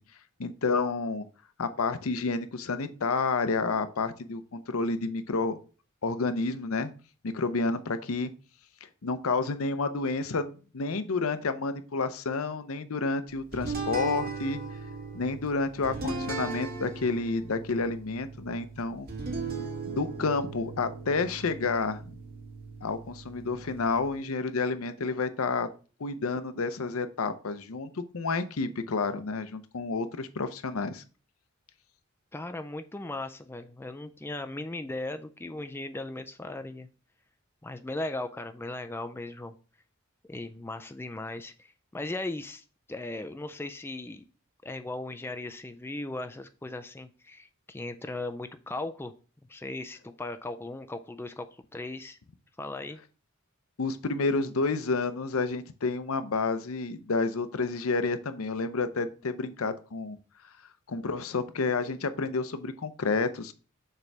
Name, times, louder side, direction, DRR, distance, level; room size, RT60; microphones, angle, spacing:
voice 1, 0.4-1.3 1.6-5.6 6.0-6.9 7.2-8.3 9.0-14.6 15.1-19.1 19.8-22.2 22.8-25.7 26.0-31.0 53.8-60.2 60.9-63.5, left 4 dB, 70° left, 11 dB, 0.6 m, -30 dB
sound 1, 13.5-24.2, right 3 dB, 45° right, 1.6 m, -38 dB
voice 2, 32.3-36.9 37.6-39.5 40.3-44.2 44.6-49.1 49.5-51.5 51.7-52.2 52.6-53.0, left 2 dB, 10° left, 8 dB, 0.4 m, -37 dB
6.7 x 3.4 x 5.9 m, 0.36 s
head